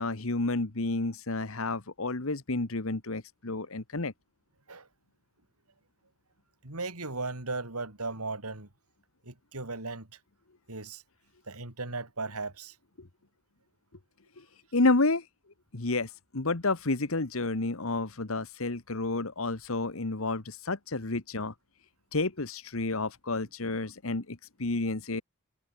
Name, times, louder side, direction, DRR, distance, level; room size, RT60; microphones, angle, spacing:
voice 1, 0.0-4.1 13.0-13.1 14.4-14.5 14.7-15.3 15.7-21.5 22.1-25.2, left 2 dB, 65° left, 1.5 m, -30 dB
voice 2, 6.6-8.7 9.2-10.1 10.7-11.0 11.5-12.8, right 3 dB, 90° right, 4.0 m, -36 dB
head